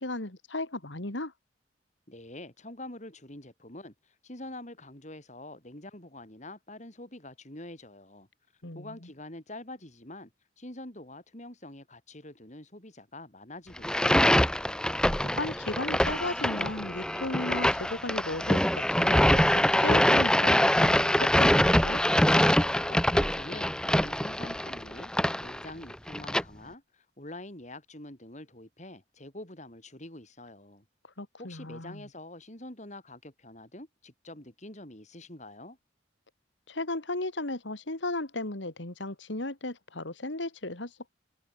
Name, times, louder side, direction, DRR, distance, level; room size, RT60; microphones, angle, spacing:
voice 1, 0.0-1.3 8.6-9.0 15.3-18.6 18.9-22.0 31.2-32.0 36.7-41.1, left 2 dB, 75° left, 2.7 m, -35 dB
voice 2, 2.1-8.3 8.7-10.3 10.6-14.5 22.9-25.1 25.4-30.8 31.4-35.8, left 1 dB, 40° left, 4.4 m, -45 dB
sound 1, 13.8-26.4, left 1 dB, 5° left, 1.1 m, -24 dB
head